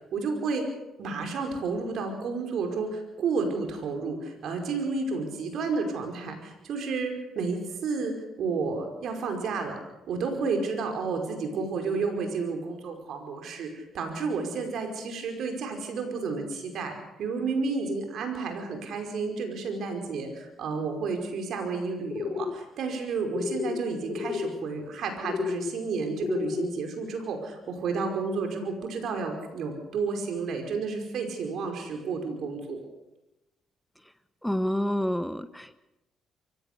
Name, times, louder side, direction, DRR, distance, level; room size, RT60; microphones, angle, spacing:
voice 1, 0.1-0.6 1.0-9.8 10.1-32.8, right 4 dB, 70° right, 4 dB, 5.2 m, -31 dB
sound 1, 22.1-22.6 23.3-23.8 24.0-24.5 25.2-25.7 26.2-26.7, left 6 dB, 55° left, 1.2 m, -31 dB
voice 2, 34.4-35.8, equal, 5° left, 12 dB, 1.0 m, -28 dB
24.0 x 16.5 x 6.9 m, 0.97 s
supercardioid pair, 75°, 0 cm